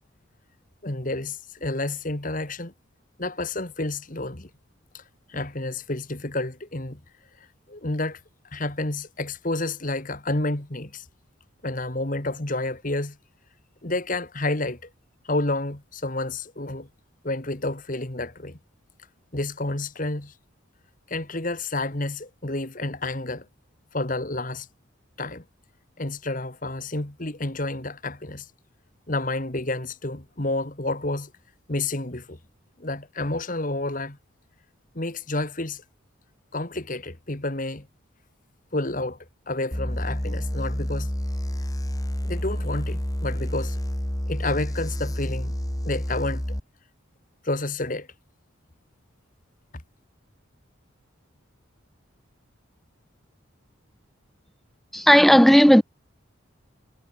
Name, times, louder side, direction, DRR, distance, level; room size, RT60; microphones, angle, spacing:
voice 1, 0.8-2.7 3.2-4.5 4.9-5.0 5.3-7.0 7.4-8.2 8.5-11.1 11.6-13.2 13.8-14.9 15.2-16.9 17.2-18.6 19.3-20.3 21.1-23.5 23.9-24.7 25.2-25.4 26.0-28.5 29.1-31.3 31.7-32.4 32.8-34.2 34.9-35.8 36.5-37.9 38.7-39.2 39.5-41.1 42.2-43.8 44.3-45.5 45.8-46.6 47.4-48.1, left 2 dB, 40° left, 2.0 m, -30 dB
sound 1, 39.7-46.6, equal, 15° left, 2.1 m, -29 dB
voice 2, 54.9-55.8, equal, ahead, 0.4 m, -14 dB
head